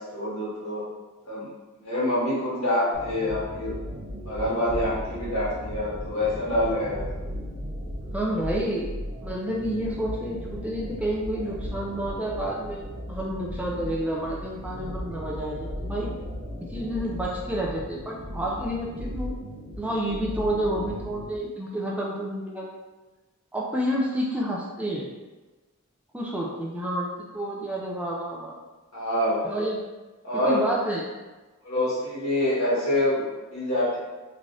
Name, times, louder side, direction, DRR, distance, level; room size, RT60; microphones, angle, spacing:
voice 1, 0.1-0.8 1.2-1.5 1.8-3.7 4.2-7.0 28.9-29.5 30.2-30.6 31.6-34.0, left 1 dB, 75° left, -8 dB, 1.3 m, -26 dB
sound 1, 2.9-21.4, equal, 50° right, 0.7 m, -36 dB
voice 2, 8.1-9.0 9.2-16.1 16.7-19.3 19.8-22.7 23.5-25.1 26.1-28.6 29.4-29.8 30.4-31.0, right 1 dB, 5° right, -3 dB, 0.3 m, -29 dB
3.2 x 2.4 x 2.5 m, 1.2 s
head